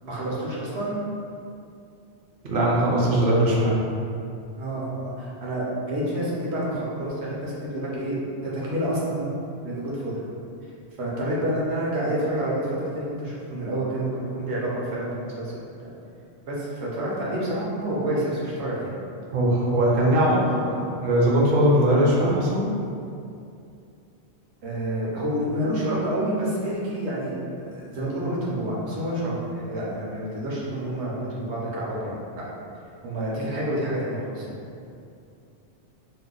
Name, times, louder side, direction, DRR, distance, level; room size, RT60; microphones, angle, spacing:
voice 1, 0.0-1.0 4.6-8.2 8.4-9.3 9.6-10.1 10.6-10.7 11.0-15.5 15.8-15.9 16.5-18.9 24.6-27.4 27.7-32.4 33.0-34.5, right 1 dB, 75° right, -6 dB, 1.0 m, -28 dB
voice 2, 2.4-3.8 19.3-22.7, right 1 dB, 60° right, -4 dB, 0.7 m, -20 dB
2.7 x 2.1 x 3.7 m, 2.5 s
omnidirectional pair, 1.1 m